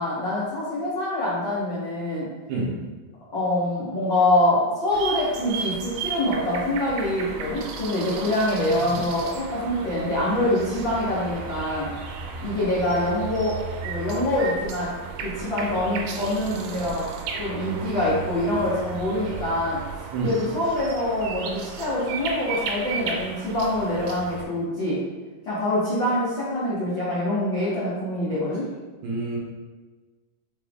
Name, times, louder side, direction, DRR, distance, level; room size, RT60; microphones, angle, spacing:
voice 1, 0.0-2.3 3.3-11.9 12.4-13.6 13.8-14.9 15.2-17.0 17.4-19.8 20.2-25.0 25.5-28.6, left 1 dB, 85° left, -10 dB, 1.0 m, -25 dB
sound 1, 4.9-24.5, right 5 dB, 90° right, 2.3 m, -34 dB
voice 2, 29.0-29.4, right 3 dB, 75° right, -4 dB, 2.0 m, -27 dB
6.2 x 2.3 x 3.4 m, 1.3 s
omnidirectional pair, 3.9 m